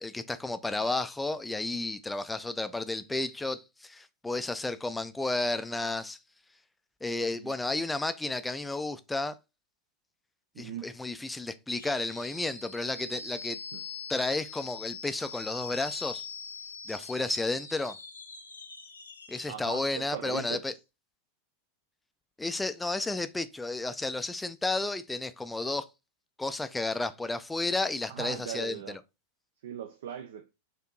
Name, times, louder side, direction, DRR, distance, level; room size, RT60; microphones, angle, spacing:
voice 1, 0.0-6.2 7.0-9.4 10.6-13.6 14.1-16.3 16.9-18.0 19.3-20.7 22.4-25.9 26.4-28.8, left 2 dB, 10° left, 0.4 m, -32 dB
voice 2, 10.5-10.9 13.7-13.8 19.5-20.6 28.1-29.0 29.6-30.5, right 9 dB, 55° right, 0.5 m, -39 dB
sound 1, 11.8-19.5, left 5 dB, 75° left, 0.7 m, -43 dB
4.4 x 2.8 x 3.7 m
figure-of-eight pair, 90°, 0 cm